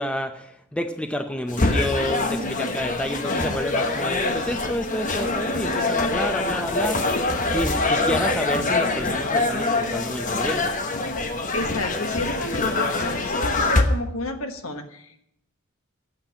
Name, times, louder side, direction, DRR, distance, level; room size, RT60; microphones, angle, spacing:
voice 1, 0.0-7.2 7.5-10.7, left 1 dB, 5° left, 7 dB, 0.6 m, -29 dB
sound 1, 1.5-13.8, left 2 dB, 35° left, 1.1 m, -24 dB
voice 2, 11.5-15.2, left 2 dB, 65° left, 6 dB, 1.3 m, -31 dB
8.9 x 7.5 x 8.9 m, 0.75 s
head